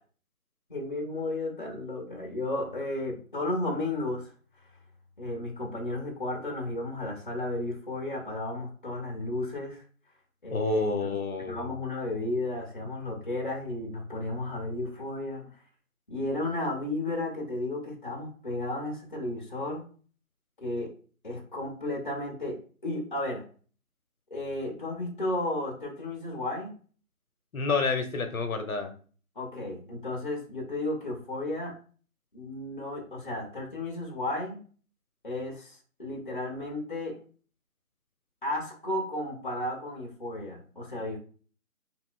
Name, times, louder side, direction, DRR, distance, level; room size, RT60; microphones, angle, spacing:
voice 1, 0.7-4.3 5.2-9.8 10.4-11.1 11.5-15.4 16.1-19.8 20.6-20.9 21.2-23.5 24.3-26.7 29.4-31.8 32.3-34.6 35.2-37.2 38.4-41.2, left 2 dB, 35° left, 0 dB, 0.6 m, -33 dB
voice 2, 10.5-11.7 27.5-28.9, left 4 dB, 70° left, 6 dB, 0.8 m, -29 dB
2.7 x 2.5 x 3.6 m, 0.41 s
figure-of-eight pair, 165°, 43 cm